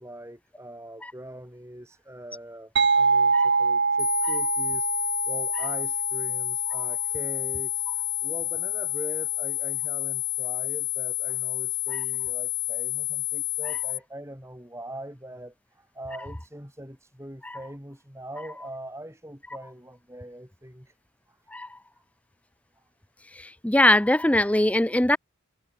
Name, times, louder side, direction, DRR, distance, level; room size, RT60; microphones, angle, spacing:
voice 1, 0.0-20.9 21.3-21.4, right 1 dB, 10° right, 4.6 m, -42 dB
sound 1, 2.8-8.2, right 4 dB, 50° right, 1.3 m, -26 dB
sound 2, 4.0-14.0, left 19 dB, 75° left, 0.8 m, -30 dB
voice 2, 23.3-25.2, left 1 dB, 5° left, 0.5 m, -22 dB
head